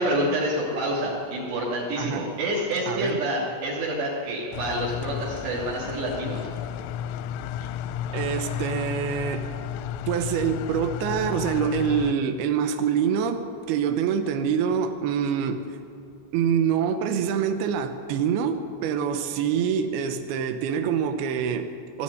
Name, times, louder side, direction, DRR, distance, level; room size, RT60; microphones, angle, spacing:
voice 1, 0.0-6.5, right 1 dB, 60° right, 4.9 m, -27 dB
voice 2, 2.0-2.3 2.9-3.2 7.6-7.7 8.1-9.5 10.1-15.8 16.3-22.0, right 7 dB, 80° right, 2.3 m, -26 dB
sound 1, 4.5-12.1, left 9 dB, 90° left, 3.3 m, -33 dB
20.0 x 14.5 x 9.8 m
omnidirectional pair, 5.8 m